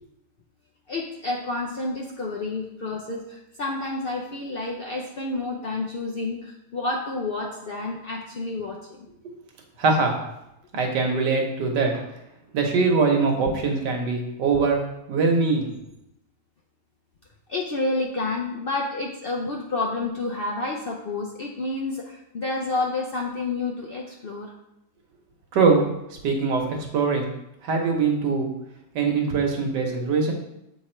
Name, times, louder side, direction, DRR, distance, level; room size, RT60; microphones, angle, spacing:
voice 1, 0.9-9.1 17.5-24.5, left 2 dB, 85° left, -1 dB, 0.5 m, -29 dB
voice 2, 9.8-10.2 10.7-12.1 12.5-14.8 15.1-15.7 25.5-25.8 26.2-27.3 27.6-28.5 28.9-30.3, right 4 dB, 90° right, 2 dB, 1.6 m, -22 dB
7.6 x 3.4 x 4.3 m, 0.84 s
omnidirectional pair, 1.8 m